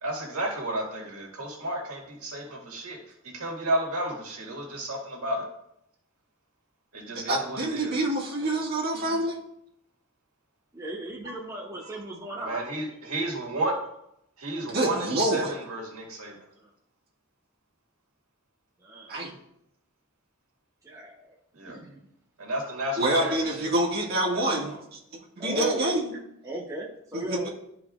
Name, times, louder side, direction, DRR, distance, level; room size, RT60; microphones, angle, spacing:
voice 1, 0.0-3.0 3.2-5.4 6.9-8.6 8.9-9.2 11.3-11.4 12.4-13.7 14.4-16.3 21.5-21.8 22.4-23.6 24.5-24.8, right 1 dB, 85° right, -1 dB, 1.9 m, -32 dB
voice 2, 7.3-9.4 14.7-15.5 19.1-19.3 23.0-25.0 25.4-26.1 27.1-27.5, right 1 dB, 45° right, -4 dB, 1.8 m, -26 dB
voice 3, 10.7-12.6 16.6-16.7 18.8-19.1 20.8-21.4 21.7-22.0 25.4-25.9 26.4-27.5, equal, 15° right, -3 dB, 0.8 m, -36 dB
12.5 x 4.8 x 2.4 m, 0.78 s
head